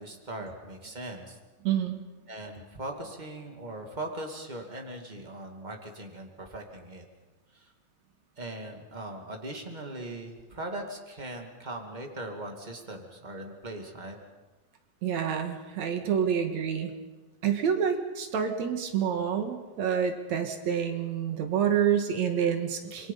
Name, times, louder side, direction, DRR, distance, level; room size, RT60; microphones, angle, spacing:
voice 1, 0.0-1.4 2.3-7.0 7.5-7.7 8.4-14.2, right 1 dB, 15° right, 3 dB, 2.2 m, -40 dB
voice 2, 15.0-16.9 17.4-23.1, right 8 dB, 70° right, 6 dB, 2.9 m, -28 dB
27.0 x 23.0 x 5.5 m, 1.2 s
omnidirectional pair, 3.3 m